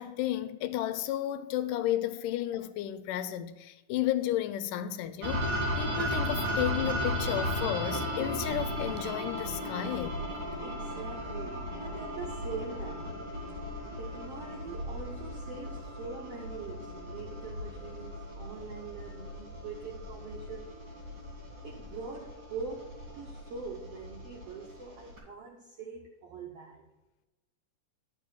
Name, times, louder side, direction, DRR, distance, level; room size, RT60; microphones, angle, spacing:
voice 1, 0.0-10.2, left 12 dB, 80° left, 2.2 m, -33 dB
sound 1, 5.2-25.2, equal, 40° right, 3.1 m, -36 dB
voice 2, 10.6-13.3 13.7-20.7 21.6-26.8, right 5 dB, 70° right, 1.4 m, -43 dB
11.0 x 5.0 x 6.1 m
omnidirectional pair, 3.8 m